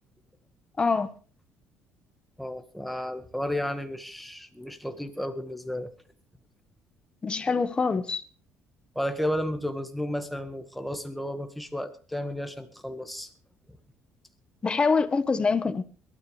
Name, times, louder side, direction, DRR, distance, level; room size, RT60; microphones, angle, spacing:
voice 1, 0.8-1.1 7.2-8.2 14.6-15.8, left 4 dB, 20° left, 1.3 m, -24 dB
voice 2, 2.4-5.9 9.0-13.3, left 1 dB, ahead, 1.8 m, -33 dB
22.0 x 13.0 x 3.4 m
cardioid pair, 125°, 4 cm